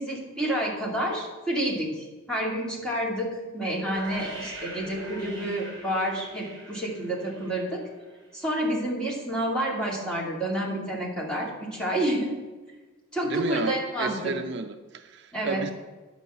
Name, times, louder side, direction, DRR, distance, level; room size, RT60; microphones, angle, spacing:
voice 1, 0.0-7.8 8.3-12.3 13.1-14.3 15.3-15.6, right 1 dB, 5° left, -5 dB, 2.4 m, -29 dB
sound 1, 3.7-8.6, right 1 dB, 20° right, 4.0 m, -41 dB
voice 2, 13.2-15.7, right 4 dB, 55° right, 7 dB, 0.5 m, -32 dB
11.0 x 5.3 x 8.0 m, 1.3 s
head